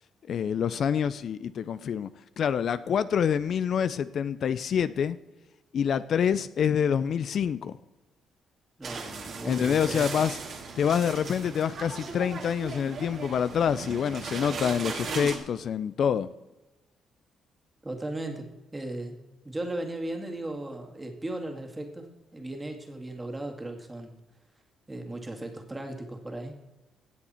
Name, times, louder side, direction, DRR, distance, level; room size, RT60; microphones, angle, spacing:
voice 1, 0.3-2.1 2.4-5.2 5.7-7.8 9.4-10.4 10.8-16.3, left 8 dB, 60° left, 15 dB, 0.4 m, -26 dB
voice 2, 8.8-10.2 17.8-24.2 24.9-26.6, right 1 dB, 15° right, 3 dB, 2.1 m, -37 dB
sound 1, 8.8-15.4, right 4 dB, 55° right, 2.2 m, -37 dB
16.5 x 7.3 x 4.3 m, 1.1 s
cardioid pair, 90°, 0 cm